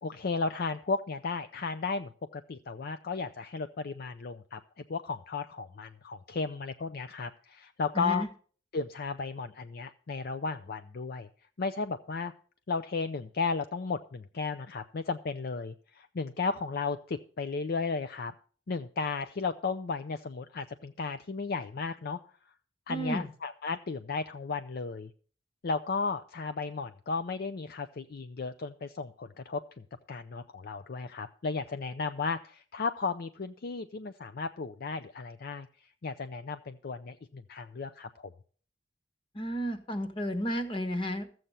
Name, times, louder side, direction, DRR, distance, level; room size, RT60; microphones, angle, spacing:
voice 1, 0.0-4.6 4.9-8.2 8.7-11.3 11.6-12.3 12.7-18.3 18.7-22.2 22.9-25.1 25.6-35.7 36.0-38.3, left 4 dB, 55° left, 10 dB, 0.5 m, -34 dB
voice 2, 7.9-8.3 22.9-23.3 39.3-41.3, equal, 30° left, 8 dB, 1.4 m, -32 dB
13.5 x 7.8 x 5.6 m, 0.43 s
head